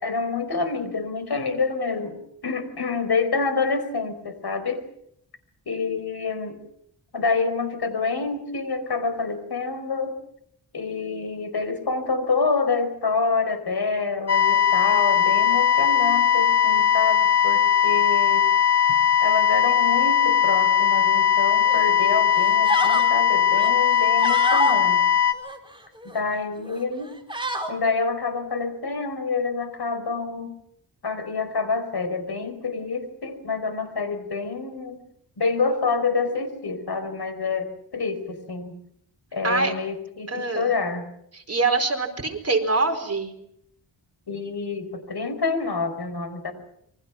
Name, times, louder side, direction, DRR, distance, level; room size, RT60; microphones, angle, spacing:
voice 1, 0.0-2.2 2.4-4.8 5.7-6.6 7.1-10.2 10.7-18.5 18.9-25.0 26.0-27.1 27.7-30.5 31.0-35.0 35.4-38.7 39.3-41.1 44.3-46.5, left 4 dB, 60° left, 11 dB, 4.9 m, -27 dB
sound 1, 14.3-25.3, left 9 dB, 35° left, 3.4 m, -19 dB
sound 2, 21.7-21.9 22.3-23.1 23.5-24.8 25.3-26.2 26.6-26.8 27.1-27.7, right 1 dB, 10° right, 4.5 m, -29 dB
voice 2, 40.3-40.7 41.3-43.3, right 3 dB, 35° right, 4 dB, 4.5 m, -24 dB
28.0 x 23.5 x 6.0 m, 0.74 s
wide cardioid pair, 90°, 45 cm